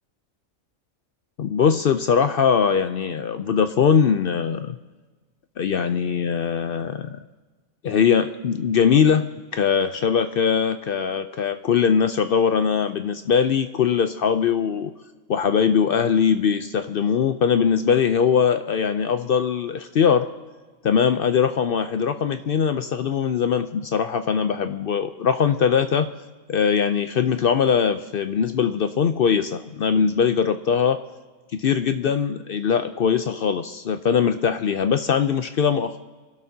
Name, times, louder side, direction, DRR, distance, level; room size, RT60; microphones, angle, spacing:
voice 1, 1.4-4.8 5.6-7.2 7.8-9.3 9.5-14.9 15.3-20.3 20.8-26.1 26.5-31.0 31.5-36.0, left 7 dB, 60° left, 9 dB, 0.6 m, -21 dB
28.0 x 12.0 x 2.7 m, 1.3 s
omnidirectional pair, 1.4 m